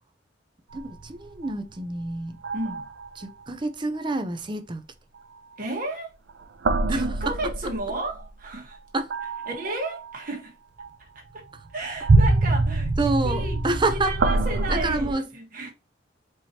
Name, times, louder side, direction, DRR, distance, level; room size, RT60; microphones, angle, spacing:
voice 1, 0.7-2.4 3.2-4.8 6.9-7.7 8.9-9.1 13.0-14.2 14.7-15.3, right 2 dB, 25° right, 0.5 m, -28 dB
sound 1, 0.7-2.1 2.4-3.2 6.3-8.3 9.1-10.2 10.8-10.9 11.6-15.1, right 2 dB, 75° right, 0.5 m, -25 dB
voice 2, 2.5-2.9 5.6-6.1 6.9-8.8 9.5-10.5 11.0-15.7, right 2 dB, 50° right, 1.4 m, -33 dB
4.6 x 2.9 x 2.8 m
head